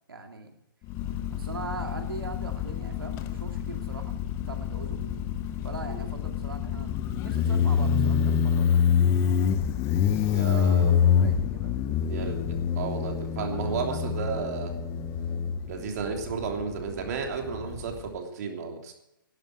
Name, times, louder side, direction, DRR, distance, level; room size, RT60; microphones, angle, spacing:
voice 1, 0.1-0.6 1.3-4.1 4.5-5.0 5.6-7.0 7.2-8.9 10.3-11.8 13.4-14.2, right 3 dB, 85° right, 4 dB, 2.2 m, -41 dB
Motorcycle, 0.9-18.1, left 8 dB, 25° left, 0.9 m, -27 dB
voice 2, 10.3-11.0 12.1-14.7 15.6-18.9, right 5 dB, 50° right, 3 dB, 3.1 m, -33 dB
11.5 x 11.5 x 7.7 m, 0.86 s
hypercardioid pair, 140°, 12 cm